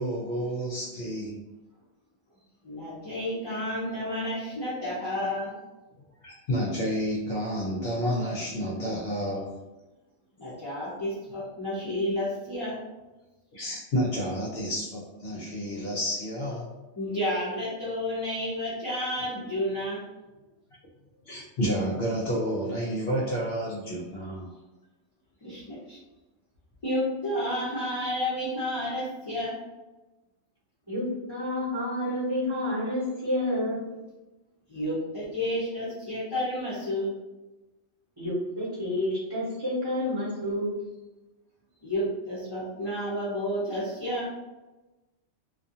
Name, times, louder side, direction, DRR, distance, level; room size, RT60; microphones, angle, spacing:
voice 1, 0.0-1.4 6.2-9.6 13.5-16.7 21.3-24.5, equal, 60° left, -4 dB, 0.7 m, -30 dB
voice 2, 2.6-5.5 10.4-12.8 17.0-20.0 25.4-26.0 26.8-29.6 34.7-37.2 41.8-44.3, left 1 dB, 30° left, -10 dB, 0.5 m, -31 dB
voice 3, 31.3-33.8 38.2-40.8, left 1 dB, 20° right, -10 dB, 0.9 m, -29 dB
2.3 x 2.3 x 2.7 m, 1.1 s
omnidirectional pair, 1.3 m